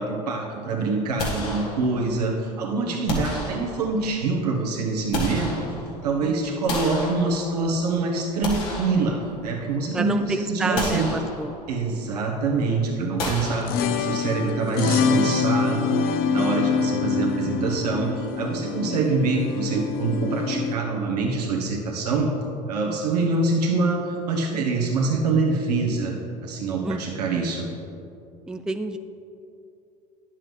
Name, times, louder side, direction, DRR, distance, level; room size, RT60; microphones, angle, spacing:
voice 1, 0.0-5.6 6.0-11.1 11.7-22.4 22.7-26.2 26.4-27.7, right 3 dB, 80° right, 0 dB, 1.3 m, -25 dB
sound 1, 1.2-2.2 3.1-4.1 4.8-6.1 6.7-7.8 8.2-9.7 10.1-10.2 10.7-11.8 13.2-14.3, left 2 dB, 70° left, 1.6 m, -32 dB
voice 2, 6.2-6.8 9.9-11.5 18.8-18.9 22.9-23.0 26.8-27.4 28.5-29.0, right 2 dB, 5° right, 8 dB, 0.3 m, -30 dB
sound 2, 13.4-20.7, left 5 dB, 50° left, 0.6 m, -25 dB
10.5 x 7.5 x 3.2 m, 2.6 s
hypercardioid pair, 70°, 20 cm